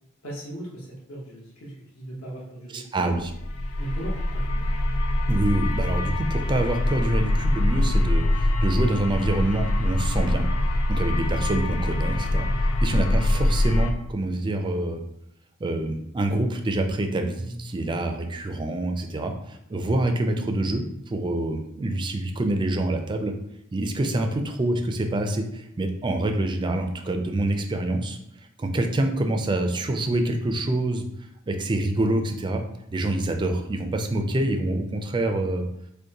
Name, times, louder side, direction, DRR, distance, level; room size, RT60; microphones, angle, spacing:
voice 1, 0.2-3.1 3.8-4.7 17.7-18.0, right 1 dB, 65° left, -4 dB, 1.0 m, -38 dB
voice 2, 2.7-3.3 5.3-10.4 10.9-15.0 15.6-23.3 23.7-28.2 28.6-31.0 31.5-32.6 32.9-35.6, right 1 dB, 20° right, 5 dB, 0.3 m, -26 dB
sound 1, 3.2-13.9, left 1 dB, 90° left, 0.4 m, -24 dB
5.1 x 2.1 x 2.8 m, 0.78 s
head